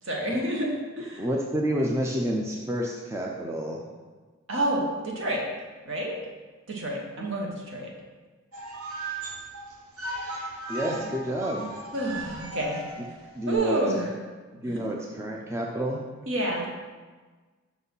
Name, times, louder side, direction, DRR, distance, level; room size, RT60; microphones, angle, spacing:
voice 1, 0.0-1.3 4.5-5.4 5.8-6.2 6.7-7.9 11.9-12.9 13.5-14.2 14.6-14.9 16.3-16.7, right 1 dB, 60° right, -1 dB, 1.2 m, -29 dB
voice 2, 1.2-3.8 10.7-11.7 13.3-13.8 14.5-16.0, equal, 10° right, -1 dB, 0.5 m, -29 dB
sound 1, 8.5-13.5, right 2 dB, 90° right, 1.0 m, -37 dB
6.0 x 4.1 x 5.5 m, 1.4 s
head